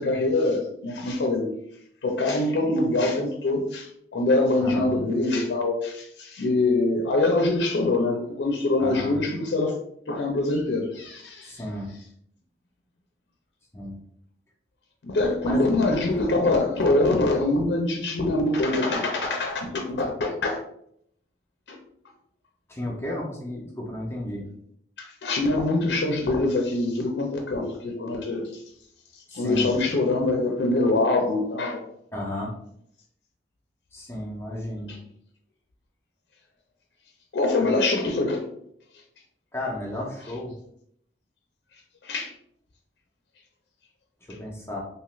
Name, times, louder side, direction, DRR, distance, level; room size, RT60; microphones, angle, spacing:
voice 1, 0.0-1.6 2.0-9.8 10.1-11.5 15.0-20.6 21.7-21.8 25.0-28.6 29.3-31.9 34.9-35.0 37.3-38.4 42.0-42.3, left 2 dB, 70° left, 2 dB, 0.4 m, -24 dB
voice 2, 4.6-4.9 8.8-9.2 11.4-11.9 13.7-14.0 15.4-15.6 22.7-24.4 29.3-29.7 32.1-32.5 33.9-34.9 39.5-40.5 44.3-44.8, left 1 dB, 15° left, -3 dB, 0.5 m, -33 dB
2.8 x 2.3 x 3.0 m, 0.70 s
head